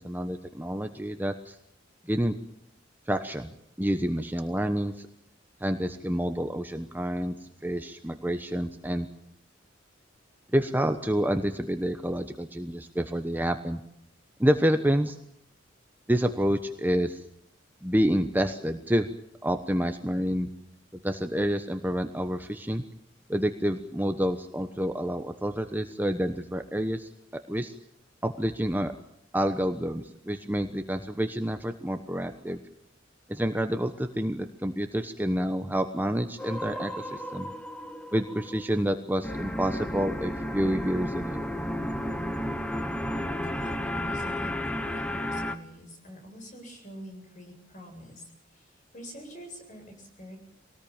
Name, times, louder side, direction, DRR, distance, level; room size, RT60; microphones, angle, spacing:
voice 1, 0.0-1.6 2.1-2.3 3.1-3.5 3.8-5.1 5.6-9.1 10.5-13.8 14.4-15.2 16.1-17.2 17.8-19.1 19.4-20.5 21.0-22.8 23.3-27.1 27.5-27.7 28.2-28.9 29.3-32.6 33.3-37.5 38.1-41.5, equal, 10° right, 7 dB, 1.0 m, -28 dB
Choirs ghosts & orchestras Morphagene reel, 36.4-38.9 39.2-45.6, left 1 dB, 5° left, 1.3 m, -33 dB
voice 2, 43.5-48.2 48.5-48.7 48.9-50.4, equal, 40° left, 4 dB, 7.8 m, -45 dB
23.5 x 19.0 x 8.9 m, 0.75 s
head